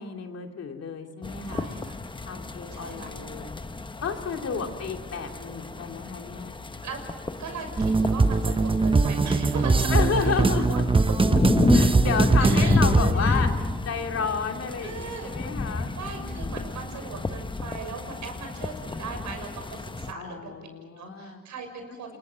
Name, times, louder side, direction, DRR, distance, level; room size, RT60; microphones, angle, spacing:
voice 1, 0.0-1.7 2.2-3.6 4.0-6.6 9.9-10.8 11.7-16.7 20.1-21.4, left 6 dB, 55° left, 3 dB, 2.9 m, -32 dB
sound 1, 1.2-20.1, left 3 dB, 15° left, 1.0 m, -30 dB
voice 2, 1.5-1.9 2.7-3.1 4.3-4.6 6.8-7.0 7.4-9.9 10.2-10.4 10.7-10.8 12.4-13.4 14.8-15.3 15.9-20.7 21.0-22.2, right 4 dB, 70° right, 5 dB, 6.1 m, -38 dB
sound 2, 7.8-13.1, right 3 dB, 15° right, 0.9 m, -21 dB
27.5 x 21.5 x 7.6 m, 1.4 s
cardioid pair, 90°, 30 cm